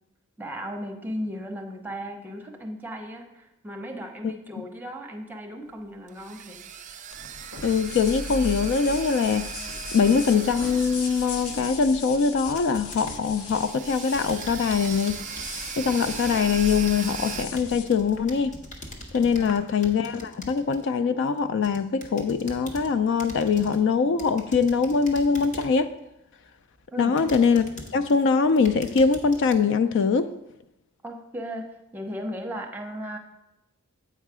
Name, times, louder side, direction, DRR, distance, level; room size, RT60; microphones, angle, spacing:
voice 1, 0.4-6.6 19.3-19.6 26.9-27.2 31.0-31.7 31.9-33.2, equal, 10° right, 1 dB, 0.8 m, -36 dB
sound 1, 5.8-12.4 12.7-12.8 13.4-17.5, right 8 dB, 35° right, 0.4 m, -38 dB
sound 2, 7.1-19.5, left 3 dB, 80° left, 0.8 m, -38 dB
voice 2, 7.6-9.5 9.9-15.2 15.8-18.5 19.1-25.9 27.0-27.7 27.9-30.3, left 5 dB, 55° left, 12 dB, 0.3 m, -23 dB
sound 3, 12.5-13.7 14.1-20.9 21.4-22.9 23.2-23.8 24.2-25.8 26.4-26.5 27.2-28.1 28.5-29.6, left 1 dB, 35° left, 0.9 m, -43 dB
8.1 x 4.7 x 4.8 m, 0.88 s
head